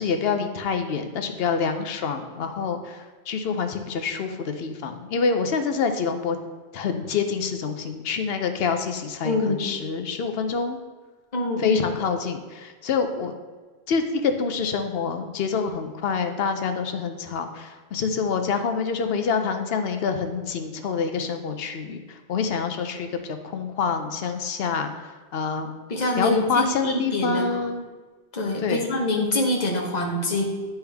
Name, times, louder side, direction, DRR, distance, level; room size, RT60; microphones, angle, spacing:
voice 1, 0.0-3.0 3.3-6.4 6.7-10.8 11.6-13.3 13.9-23.1 23.4-25.7 26.2-27.9 28.6-28.8, left 5 dB, 70° left, 7 dB, 0.8 m, -26 dB
voice 2, 9.2-9.7 11.3-11.8 25.9-27.6 28.3-30.4, left 2 dB, 40° left, 0 dB, 1.1 m, -25 dB
10.0 x 3.4 x 3.4 m, 1.4 s
omnidirectional pair, 1.1 m